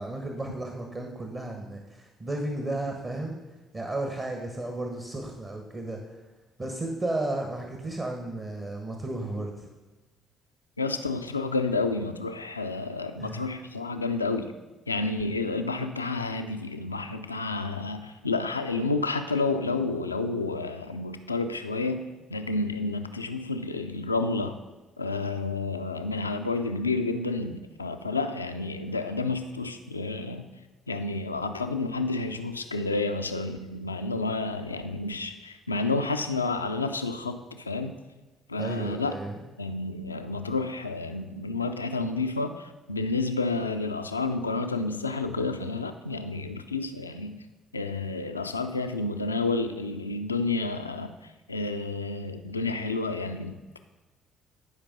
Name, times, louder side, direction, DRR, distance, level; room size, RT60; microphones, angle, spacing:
voice 1, 0.0-3.4 3.7-6.2 6.6-9.7 13.2-13.4 38.6-39.4, right 2 dB, 30° right, 2 dB, 1.3 m, -33 dB
voice 2, 10.8-14.5 14.9-24.6 25.0-30.5 30.9-38.0 38.5-39.2 39.6-47.4 47.7-53.8, left 3 dB, 85° left, 7 dB, 0.4 m, -30 dB
10.5 x 5.1 x 5.3 m, 1.2 s
figure-of-eight pair, 50°, 0 cm